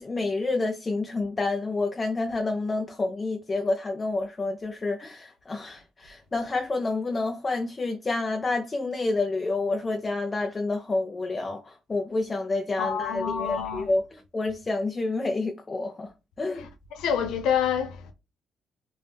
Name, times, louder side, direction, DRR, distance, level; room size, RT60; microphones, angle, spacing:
voice 1, 0.0-16.1 16.4-16.7, left 3 dB, 30° left, 0.5 m, -29 dB
voice 2, 12.8-13.9 17.0-18.1, left 8 dB, 85° left, 0.5 m, -27 dB
3.4 x 2.6 x 3.3 m
cardioid pair, 90°, 0 cm